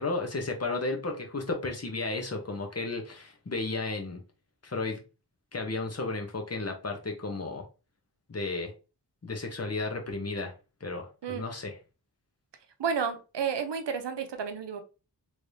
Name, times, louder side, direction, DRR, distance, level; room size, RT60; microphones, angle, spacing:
voice 1, 0.0-4.2 4.6-5.0 5.5-7.6 8.3-8.7 9.2-10.5 10.8-11.8, left 3 dB, 35° left, 0.9 m, -33 dB
voice 2, 12.8-14.8, right 6 dB, 75° right, 0.7 m, -31 dB
3.3 x 3.2 x 2.6 m
wide cardioid pair, 70°, 42 cm